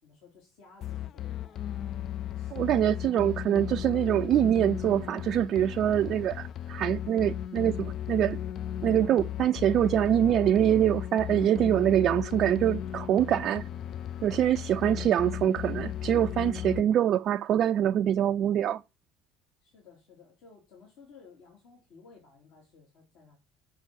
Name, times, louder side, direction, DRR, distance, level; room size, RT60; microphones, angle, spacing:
voice 1, 0.0-3.3 13.4-13.8 16.7-17.0 19.6-23.4, left 5 dB, 65° left, 3.3 m, -56 dB
sound 1, 0.8-16.8, left 10 dB, 50° left, 0.5 m, -36 dB
voice 2, 2.5-8.4 8.8-13.6 14.2-18.8, right 10 dB, 50° right, 0.4 m, -24 dB
6.8 x 6.8 x 6.2 m
hypercardioid pair, 65°, 0 cm